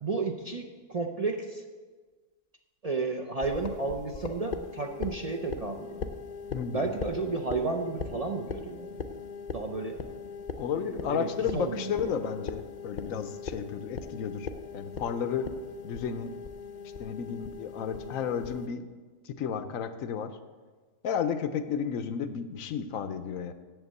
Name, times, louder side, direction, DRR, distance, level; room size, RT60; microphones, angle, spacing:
voice 1, 0.0-1.6 2.8-5.9 6.7-8.9 9.5-10.0 10.7-12.1, right 3 dB, 40° right, 3 dB, 0.5 m, -32 dB
sound 1, 3.4-18.7, left 5 dB, 45° left, 0.6 m, -40 dB
voice 2, 6.5-6.9 10.6-14.5 14.7-15.5 15.8-16.3 17.0-18.9 19.4-20.3 21.0-23.5, left 7 dB, 85° left, 10 dB, 1.1 m, -32 dB
8.1 x 7.6 x 7.8 m, 1.4 s
omnidirectional pair, 1.4 m